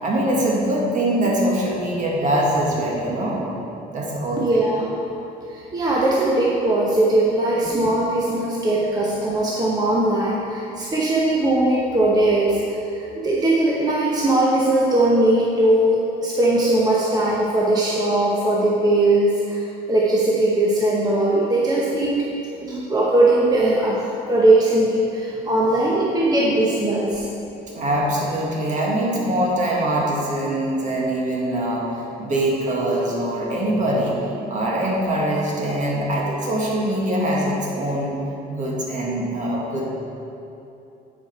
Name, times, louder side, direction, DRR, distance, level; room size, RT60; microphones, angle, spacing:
voice 1, 0.0-3.4 3.9-4.6 27.7-34.2 34.5-38.2 38.5-39.8, right 1 dB, 45° right, -3 dB, 1.8 m, -23 dB
voice 2, 4.4-5.0 5.5-22.3 22.6-27.3, right 1 dB, 25° right, -4 dB, 0.9 m, -20 dB
9.5 x 5.0 x 4.4 m, 2.8 s
cardioid pair, 110°, 17 cm